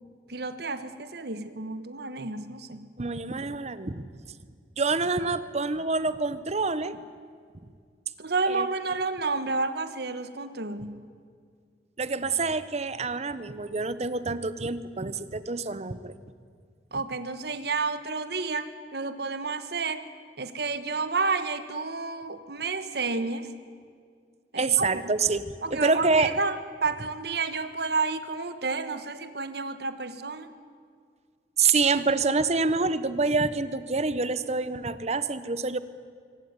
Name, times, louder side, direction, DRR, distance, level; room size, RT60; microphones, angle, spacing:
voice 1, 0.3-2.9 8.2-11.0 16.9-20.0 20.4-23.5 24.5-25.1 25.6-30.5, right 4 dB, 65° right, 11 dB, 1.4 m, -30 dB
voice 2, 3.0-4.1 4.8-7.0 8.5-8.7 12.0-16.1 24.6-26.4 31.6-35.8, right 4 dB, 40° right, 15 dB, 0.9 m, -26 dB
25.0 x 17.5 x 9.6 m, 2.1 s
head